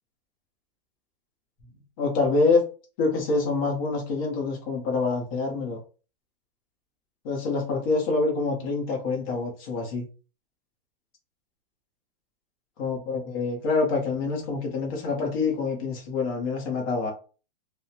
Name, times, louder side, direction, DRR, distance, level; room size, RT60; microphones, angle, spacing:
voice 1, 2.0-2.6 3.0-5.8 7.2-10.0 12.8-17.1, left 3 dB, 25° left, 0 dB, 0.7 m, -26 dB
3.2 x 2.0 x 2.8 m, 0.36 s
hypercardioid pair, 165°, 30 cm